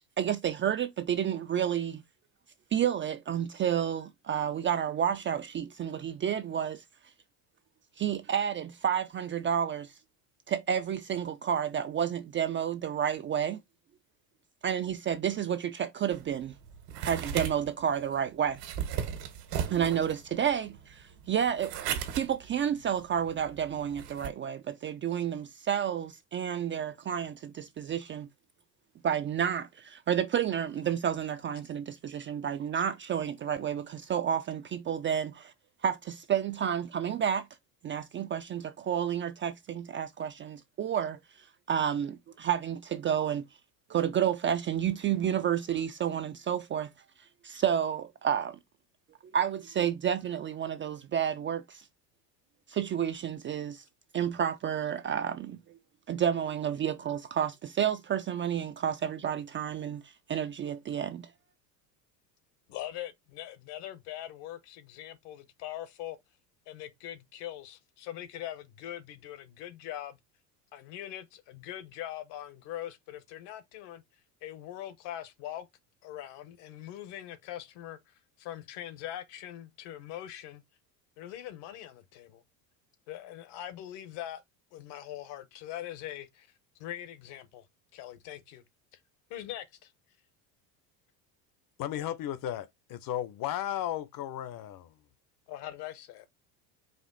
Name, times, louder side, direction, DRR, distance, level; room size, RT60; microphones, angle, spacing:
voice 1, 0.2-2.0 2.7-6.8 8.0-9.9 10.5-13.6 14.6-16.5 17.0-18.6 19.7-28.3 29.0-35.5 35.8-37.5 37.8-41.2 41.7-43.4 43.9-46.9 47.4-48.6 49.3-51.8 52.7-53.8 54.1-55.6 56.1-61.3, right 9 dB, 25° right, 0.4 m, -30 dB
sound 1, 16.1-24.3, right 9 dB, 80° right, 1.6 m, -37 dB
voice 2, 62.7-66.2 66.7-70.2 70.7-74.0 74.4-75.7 76.0-80.6 81.2-82.4 83.1-84.4 84.7-86.5 86.8-87.7 87.9-88.6 88.9-89.0 89.3-89.9 95.5-96.2, left 12 dB, 60° left, 1.2 m, -42 dB
voice 3, 91.8-94.9, left 11 dB, 45° left, 0.8 m, -35 dB
5.0 x 2.5 x 3.9 m
supercardioid pair, 95°, 48 cm